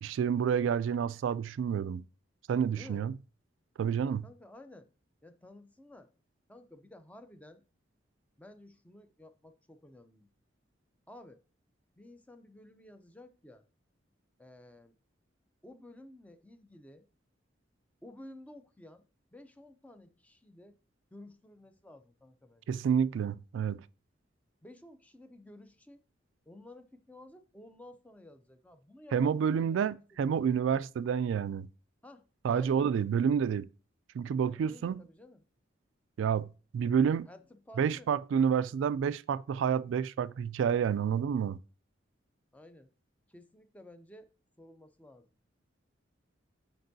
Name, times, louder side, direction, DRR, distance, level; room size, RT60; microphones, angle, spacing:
voice 1, 0.0-2.0 2.5-3.1 3.8-4.3 22.7-23.8 29.1-31.7 32.4-33.7 34.1-35.0 36.2-37.3 37.8-41.6, right 7 dB, 80° right, 0.3 m, -29 dB
voice 2, 4.0-4.9 5.2-6.1 6.5-7.6 8.4-10.3 11.1-11.4 12.0-13.7 14.4-14.9 15.6-17.1 18.0-19.0 19.3-20.8 21.1-22.7 24.6-26.0 26.5-29.9 30.3-30.5 32.0-33.0 34.4-35.4 37.3-38.1 42.5-42.9 43.3-44.3 44.6-45.3, left 1 dB, 10° left, 0.5 m, -53 dB
7.8 x 5.2 x 2.7 m
head